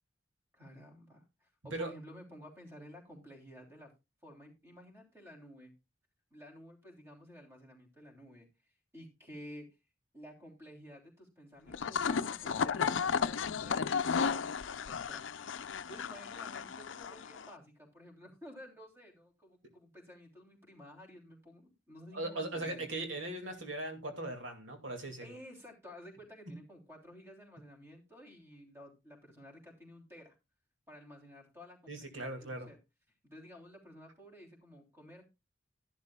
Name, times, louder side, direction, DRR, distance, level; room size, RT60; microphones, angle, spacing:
voice 1, 0.5-3.9 4.2-5.7 6.3-8.5 8.9-9.6 10.1-14.5 14.8-15.3 15.9-22.8 25.2-30.3 30.9-32.8 33.3-35.2, equal, 15° right, 1 dB, 3.2 m, -53 dB
sound 1, 11.7-17.5, left 6 dB, 85° left, 0.5 m, -34 dB
voice 2, 22.1-25.3 31.9-32.7, right 2 dB, 90° right, 4 dB, 2.2 m, -39 dB
12.5 x 11.5 x 2.3 m, 0.25 s
head